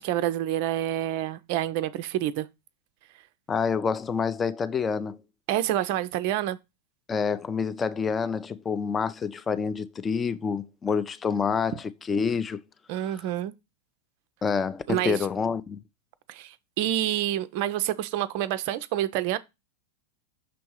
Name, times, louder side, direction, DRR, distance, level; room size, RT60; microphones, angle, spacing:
voice 1, 0.0-2.5 5.5-6.6 12.9-13.5 14.9-15.2 16.3-19.4, right 12 dB, 45° right, 0.4 m, -28 dB
voice 2, 3.5-5.2 7.1-12.6 14.4-15.8, left 6 dB, 20° left, 0.4 m, -27 dB
6.1 x 3.5 x 4.6 m
figure-of-eight pair, 90°, 0 cm